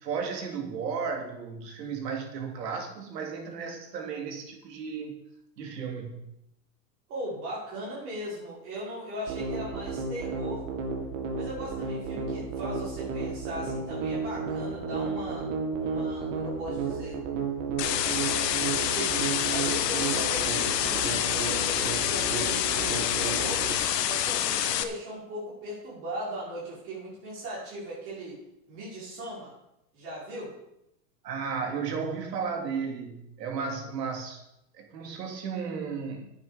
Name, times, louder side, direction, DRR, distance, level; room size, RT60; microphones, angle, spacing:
voice 1, 0.0-5.2 5.6-6.3 31.2-34.4 34.7-36.3, right 5 dB, 85° right, 3 dB, 3.0 m, -34 dB
voice 2, 7.1-10.6 11.4-15.5 15.8-17.2 18.9-19.2 19.5-23.6 24.0-28.4 28.7-29.5 29.9-30.5, right 1 dB, 25° right, -6 dB, 5.8 m, -38 dB
sound 1, 9.3-23.8, right 4 dB, 50° right, 2.3 m, -33 dB
sound 2, 17.8-24.8, left 11 dB, 85° left, 1.3 m, -27 dB
11.0 x 9.0 x 5.2 m, 0.81 s
supercardioid pair, 175°, 48 cm